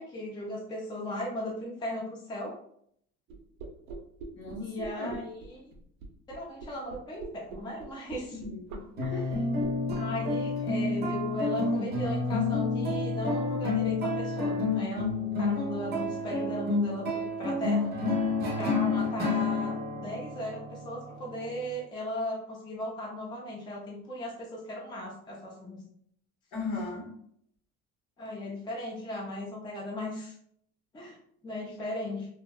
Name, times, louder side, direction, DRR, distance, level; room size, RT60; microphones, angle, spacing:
voice 1, 0.0-2.5 4.6-5.7 6.3-8.4 9.9-17.9 18.5-25.8 28.2-30.3 30.9-31.2 31.4-32.3, left 1 dB, 15° left, -3 dB, 0.5 m, -37 dB
sound 1, 3.3-10.0, right 4 dB, 85° right, 0.5 m, -42 dB
voice 2, 4.3-5.1 8.3-9.4 26.5-27.1, left 3 dB, 60° left, -1 dB, 0.9 m, -37 dB
sound 2, 9.0-21.7, left 3 dB, 35° right, 0.6 m, -30 dB
2.6 x 2.1 x 2.2 m, 0.68 s
cardioid pair, 140°, 30 cm